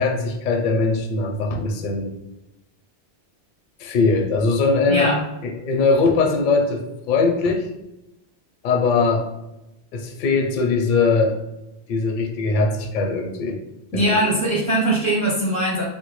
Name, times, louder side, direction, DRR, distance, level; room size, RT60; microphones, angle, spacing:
voice 1, 0.0-2.1 3.8-5.1 5.4-7.7 8.6-9.3 9.9-11.3 11.9-13.6 13.9-14.1, left 4 dB, 55° left, 2 dB, 0.5 m, -21 dB
voice 2, 4.9-5.2 13.9-15.8, right 1 dB, 10° left, -4 dB, 0.4 m, -20 dB
3.6 x 2.2 x 3.0 m, 0.93 s
omnidirectional pair, 1.2 m